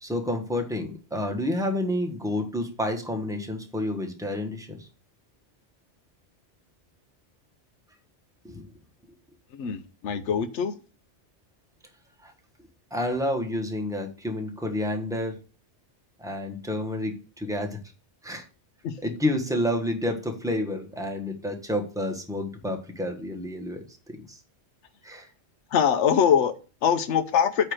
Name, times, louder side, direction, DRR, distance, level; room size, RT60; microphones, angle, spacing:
voice 1, 0.0-4.9 8.4-8.6 12.2-12.3 12.9-15.4 16.2-17.8 18.2-18.5 19.0-23.8 24.1-24.4 25.0-25.3, left 1 dB, 5° right, 1.3 m, -29 dB
voice 2, 9.5-10.8 18.8-19.0 25.7-27.7, left 8 dB, 90° left, 1.1 m, -23 dB
8.6 x 3.3 x 6.4 m
omnidirectional pair, 1.2 m